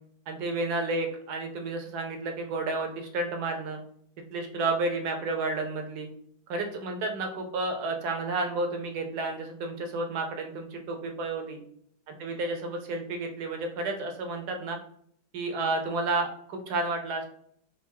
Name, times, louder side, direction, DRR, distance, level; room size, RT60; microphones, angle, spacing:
voice 1, 0.3-3.8 4.3-6.1 6.5-11.6 12.2-14.8 15.3-17.3, right 2 dB, 70° right, 4 dB, 1.2 m, -31 dB
4.6 x 2.0 x 4.4 m, 0.64 s
omnidirectional pair, 1.9 m